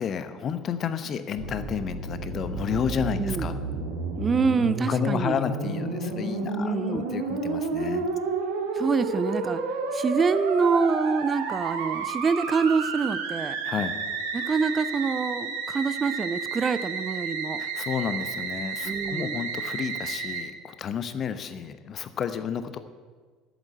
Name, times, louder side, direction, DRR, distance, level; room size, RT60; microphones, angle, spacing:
voice 1, 0.0-3.6 4.9-8.1 13.6-14.0 17.6-22.8, left 7 dB, 40° left, 12 dB, 1.0 m, -31 dB
Musical instrument, 1.4-20.4, right 4 dB, 65° right, 1.8 m, -31 dB
voice 2, 3.2-3.5 4.2-5.4 6.6-7.1 8.7-9.6 9.9-13.6 14.3-17.6 18.8-19.4, right 5 dB, 25° right, 14 dB, 0.6 m, -26 dB
12.5 x 8.4 x 8.8 m, 1.5 s
figure-of-eight pair, 65°, 0 cm